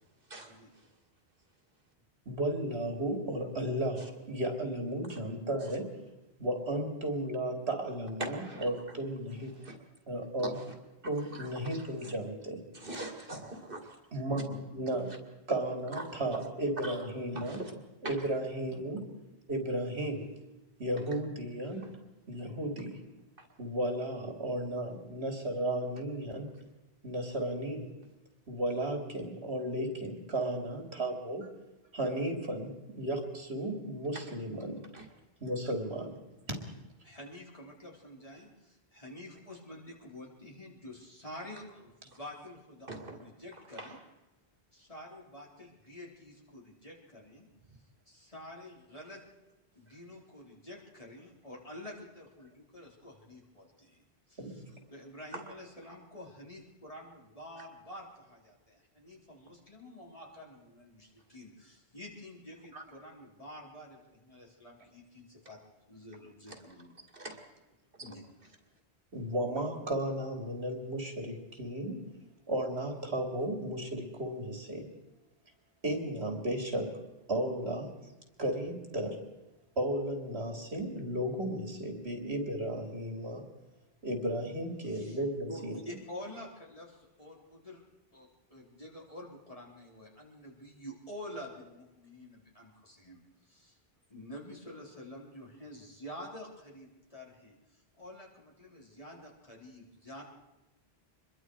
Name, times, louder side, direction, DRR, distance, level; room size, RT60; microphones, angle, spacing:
voice 1, 0.3-0.9 4.0-4.1 5.1-5.2 8.2-9.0 9.6-9.8 10.5-10.8 11.2-12.1 12.7-14.0 16.0-16.1 16.8-17.0 17.3-17.7 18.0-18.2 21.8-21.9 23.4-23.5 34.1-34.3 34.9-35.1 42.9-43.2 43.5-44.0 49.9-50.0 55.3-55.5 62.7-62.8 66.5-66.6 67.0-67.4 68.0-68.2, right 2 dB, 60° right, 4 dB, 2.6 m, -43 dB
voice 2, 2.2-5.9 6.4-9.6 10.1-10.5 11.0-12.6 14.1-15.2 15.5-17.6 18.0-19.0 19.5-20.3 20.8-21.9 22.3-23.0 23.6-26.5 27.0-27.9 28.5-31.4 31.9-34.8 35.4-36.2 36.5-36.6 54.4-54.5 69.1-72.0 72.5-74.9 75.8-76.9 77.3-77.9 78.4-79.2 79.8-83.4 84.0-85.8, right 1 dB, 90° right, 3 dB, 3.2 m, -34 dB
voice 3, 37.0-44.0 44.7-47.5 48.1-49.2 49.7-54.6 54.9-65.6 65.9-66.9 68.0-68.2 84.9-85.2 85.5-87.8 88.1-93.8 94.1-100.2, left 1 dB, 35° left, -3 dB, 4.1 m, -48 dB
25.5 x 22.0 x 4.8 m, 1.0 s
omnidirectional pair, 1.1 m